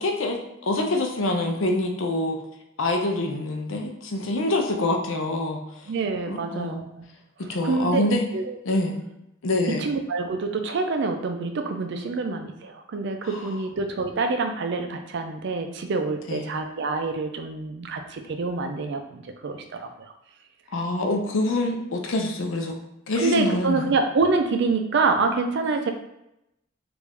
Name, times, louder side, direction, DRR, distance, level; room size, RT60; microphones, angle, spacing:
voice 1, 0.0-2.4 2.8-5.9 6.3-6.8 7.5-8.3 8.7-9.0 9.4-9.9 13.3-13.5 16.3-16.5 20.7-22.8 23.1-23.9, left 2 dB, 75° left, 3 dB, 0.6 m, -26 dB
voice 2, 5.9-6.9 7.6-8.6 9.7-19.9 23.2-25.9, right 3 dB, 60° right, 6 dB, 0.4 m, -26 dB
3.2 x 2.5 x 3.4 m, 0.84 s
head